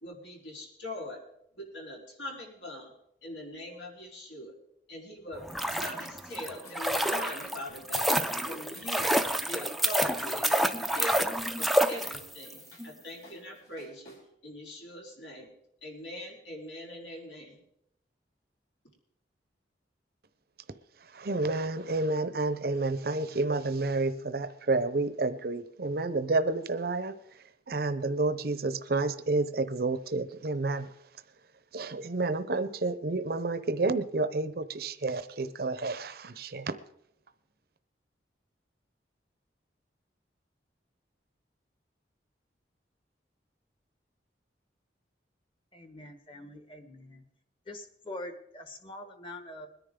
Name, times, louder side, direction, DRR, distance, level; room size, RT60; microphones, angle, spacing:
voice 1, 0.0-1.2 1.5-2.9 3.2-4.5 4.9-5.4 5.7-8.1 8.5-9.1 9.5-14.2 14.4-15.5 15.8-17.6, left 1 dB, 80° left, -2 dB, 4.0 m, -42 dB
sound 1, 5.4-12.5 12.8-12.9, equal, ahead, 0.5 m, -28 dB
sound 2, 5.9-6.0 6.2-12.3 12.6-14.2, left 1 dB, 60° left, 5.5 m, -55 dB
voice 2, 21.0-31.0 31.7-36.8, right 3 dB, 55° right, 12 dB, 0.7 m, -30 dB
voice 3, 45.7-47.2 47.7-49.7, left 1 dB, 30° left, 7 dB, 1.3 m, -44 dB
21.0 x 10.0 x 3.7 m, 0.76 s
head